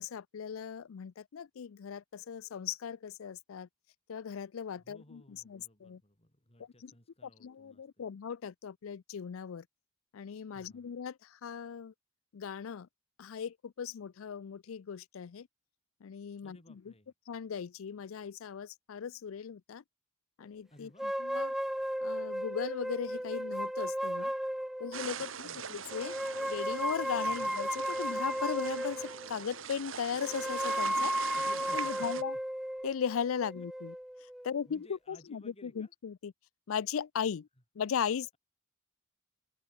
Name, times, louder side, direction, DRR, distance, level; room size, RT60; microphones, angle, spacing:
voice 1, 0.0-3.7 4.1-6.0 6.8-6.9 7.2-9.6 10.1-11.9 12.3-12.9 13.2-15.5 16.0-16.8 17.3-19.8 20.4-21.5 22.0-24.3 24.8-26.2 26.5-31.1 31.7-32.3 32.8-33.9 34.4-36.3 36.7-37.5 37.8-38.3, left 7 dB, 85° left, 0.4 m, -38 dB
voice 2, 4.8-8.1 10.5-10.9 16.4-17.1 20.7-21.1 25.2-25.7 27.3-27.6 31.3-32.2 33.6-33.7 34.4-35.9, left 1 dB, 30° left, 7.6 m, -58 dB
sound 1, 21.0-25.2 25.9-29.3 30.2-34.6, equal, ahead, 0.4 m, -34 dB
sound 2, 24.9-32.2, right 7 dB, 75° right, 2.1 m, -43 dB
head